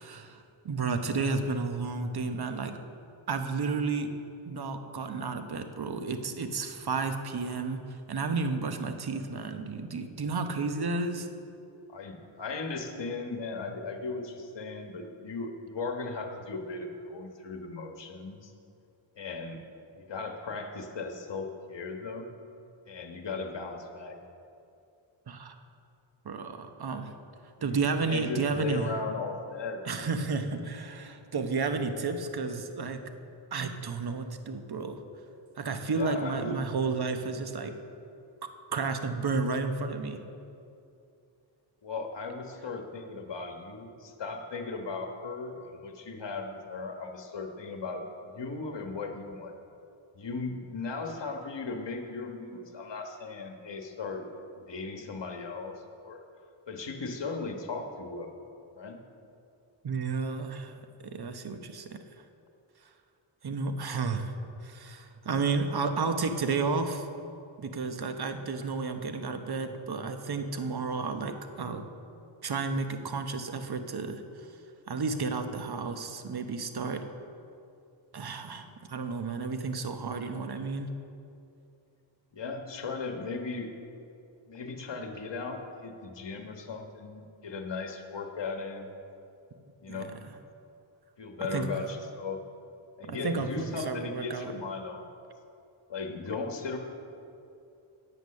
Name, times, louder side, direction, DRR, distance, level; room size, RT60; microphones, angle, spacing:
voice 1, 0.0-2.8 3.3-11.3 25.3-25.5 26.2-27.1 27.6-28.9 29.8-33.1 33.5-35.0 35.6-37.8 38.4-40.2 59.8-60.7 61.0-62.0 63.4-64.3 64.6-67.1 67.6-71.9 72.4-74.6 74.9-77.1 78.1-80.9 89.9-90.3 91.5-91.7 93.0-94.5, right 4 dB, 50° right, 7 dB, 0.9 m, -32 dB
voice 2, 11.9-18.5 19.2-19.6 19.9-22.3 22.9-24.2 27.6-27.8 28.1-29.8 35.8-36.6 41.8-49.5 50.1-54.2 54.6-56.2 56.7-58.3 58.7-59.0 82.3-83.7 84.5-88.9 89.8-90.1 91.2-92.4 93.0-95.0 95.9-96.8, left 4 dB, 60° left, 4 dB, 1.3 m, -37 dB
8.9 x 8.2 x 6.5 m, 2.6 s
wide cardioid pair, 70°, 49 cm